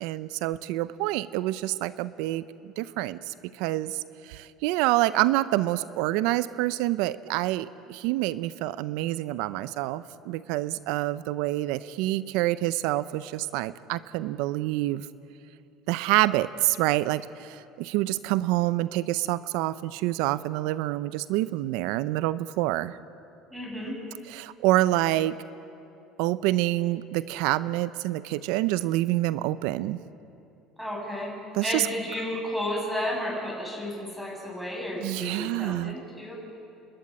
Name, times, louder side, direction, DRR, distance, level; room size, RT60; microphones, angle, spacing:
voice 1, 0.0-2.4 2.8-4.0 4.3-15.0 15.9-23.0 24.2-25.3 26.2-30.0 31.5-31.9 35.0-36.0, right 16 dB, 80° right, 16 dB, 0.6 m, -27 dB
voice 2, 23.5-23.9 30.8-31.3 31.6-36.3, left 1 dB, ahead, -2 dB, 7.0 m, -32 dB
29.5 x 12.5 x 9.9 m, 2.7 s
supercardioid pair, 110°, 0 cm